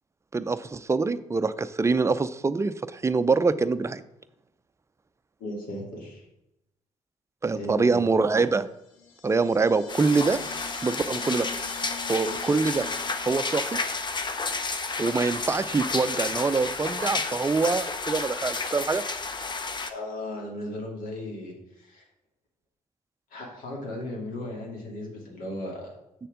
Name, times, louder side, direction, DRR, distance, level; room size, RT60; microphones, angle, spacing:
voice 1, 0.3-4.0 7.4-8.7 9.2-10.4 10.8-11.5 12.1-12.9 13.3-13.8 15.0-19.0, right 4 dB, 20° right, 12 dB, 0.5 m, -24 dB
voice 2, 5.4-6.2 7.5-8.0 19.9-22.0 23.3-26.0, left 1 dB, 60° left, -1 dB, 2.4 m, -36 dB
sound 1, 8.9-14.3, left 6 dB, 80° left, 0.9 m, -43 dB
sound 2, 9.9-19.9, left 4 dB, 30° left, 0.8 m, -31 dB
7.4 x 6.6 x 3.8 m, 0.86 s
figure-of-eight pair, 45°, 16 cm